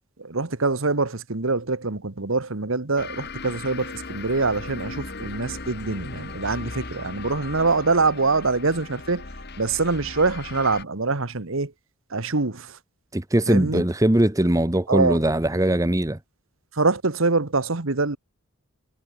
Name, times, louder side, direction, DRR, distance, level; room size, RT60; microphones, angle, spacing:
voice 1, 0.2-9.3 9.6-11.7 12.1-12.8 13.5-13.8 14.9-15.2 16.7-18.2, right 3 dB, 65° right, 1.3 m, -24 dB
sound 1, 3.0-10.8, left 3 dB, 45° left, 2.2 m, -37 dB
voice 2, 13.1-16.2, right 1 dB, 15° right, 0.9 m, -21 dB
head